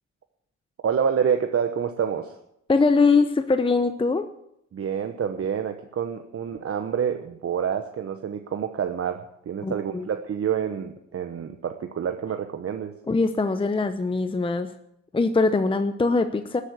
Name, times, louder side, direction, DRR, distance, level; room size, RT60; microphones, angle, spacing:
voice 1, 0.8-2.3 4.7-12.9, right 7 dB, 50° right, 6 dB, 1.1 m, -27 dB
voice 2, 2.7-4.3 9.6-10.1 13.1-14.7 15.1-16.6, left 3 dB, 15° left, 9 dB, 0.8 m, -22 dB
13.0 x 8.5 x 9.5 m, 0.78 s
cardioid pair, 90°, 30 cm